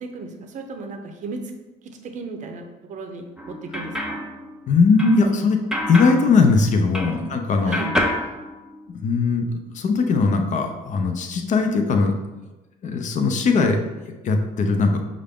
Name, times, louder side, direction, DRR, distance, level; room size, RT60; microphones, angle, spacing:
voice 1, 0.0-1.4 2.0-4.2 7.0-7.2 7.7-7.9, right 3 dB, 45° right, 5 dB, 0.6 m, -35 dB
sound 1, 3.4-7.4 7.7-9.2, left 1 dB, 5° right, 0.5 m, -29 dB
voice 2, 4.7-5.6 5.9-7.8 8.9-9.4 9.7-12.1 12.8-13.8 14.2-15.0, left 4 dB, 45° left, 5 dB, 0.6 m, -19 dB
5.4 x 2.5 x 3.5 m, 1.1 s
cardioid pair, 110°, 17 cm